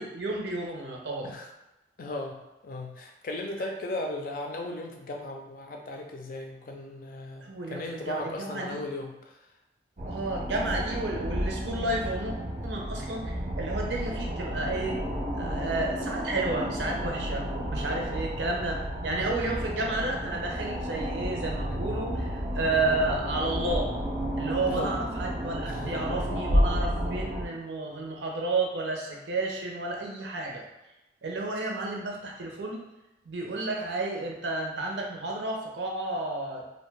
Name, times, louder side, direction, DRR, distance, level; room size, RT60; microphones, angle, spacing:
voice 1, 0.0-1.3 3.6-3.7 7.4-8.9 10.1-12.3 12.6-15.0 15.3-23.9 24.4-30.6 31.2-32.8 33.2-36.6, right 2 dB, 90° right, 0 dB, 0.6 m, -31 dB
voice 2, 2.0-2.4 2.6-9.3 24.7-25.0 25.7-26.0, left 2 dB, 50° left, 2 dB, 0.4 m, -36 dB
sound 1, 10.0-27.5, equal, 40° right, 0.5 m, -31 dB
2.6 x 2.2 x 3.2 m, 0.98 s
head